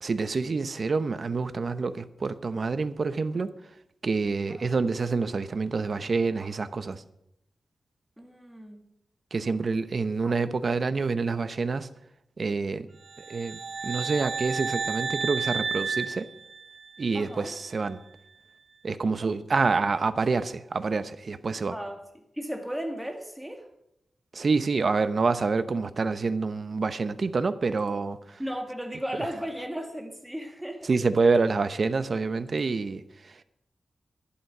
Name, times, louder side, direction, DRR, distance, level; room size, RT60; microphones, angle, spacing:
voice 1, 0.0-3.5 4.0-7.0 9.3-11.9 12.4-12.9 13.3-16.3 17.0-18.0 18.8-21.7 24.3-28.4 30.8-33.4, right 4 dB, 50° right, 0.8 m, -27 dB
voice 2, 8.2-8.9 10.2-10.4 17.1-17.5 21.7-23.7 28.4-30.9, equal, 5° right, 2.2 m, -36 dB
sound 1, 13.1-17.1, right 5 dB, 75° right, 1.1 m, -32 dB
11.5 x 11.5 x 6.1 m
wide cardioid pair, 95°, 0 cm